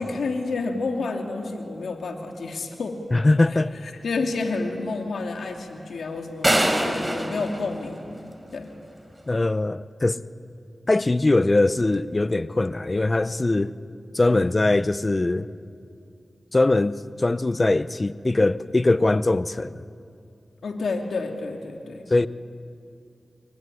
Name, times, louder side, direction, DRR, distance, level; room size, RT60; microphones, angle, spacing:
voice 1, 0.0-3.0 3.5-8.0 8.5-8.7 14.3-14.5 20.6-22.0, left 3 dB, 85° left, 2.6 m, -30 dB
voice 2, 3.1-3.7 9.3-10.2 10.9-13.7 14.1-15.5 16.5-19.8 22.1-22.3, left 2 dB, 40° left, 0.9 m, -21 dB
sound 1, 6.4-8.6, right 1 dB, 20° right, 4.4 m, -24 dB
27.0 x 22.0 x 9.9 m
cardioid pair, 40°, 0 cm